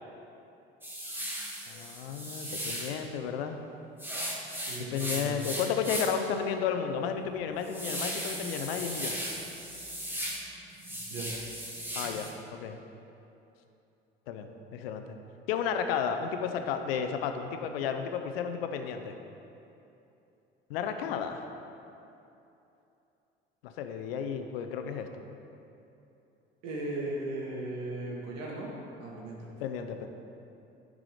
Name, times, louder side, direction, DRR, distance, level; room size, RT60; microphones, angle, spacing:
sound 1, 0.8-3.0 4.0-6.3 6.7-6.8 7.2-10.4 10.7-12.3, equal, 5° right, 1.8 m, -37 dB
voice 1, 1.7-3.6 4.9-9.2 11.9-12.8 14.3-15.2 15.5-19.2 20.7-21.5 23.6-25.2 29.6-30.1, left 7 dB, 75° left, 7 dB, 0.7 m, -33 dB
voice 2, 4.7-5.5 11.1-11.3 26.6-28.7 29.0-29.5, right 2 dB, 60° right, -3 dB, 2.1 m, -37 dB
10.5 x 4.9 x 5.0 m, 2.9 s
hypercardioid pair, 65°, 30 cm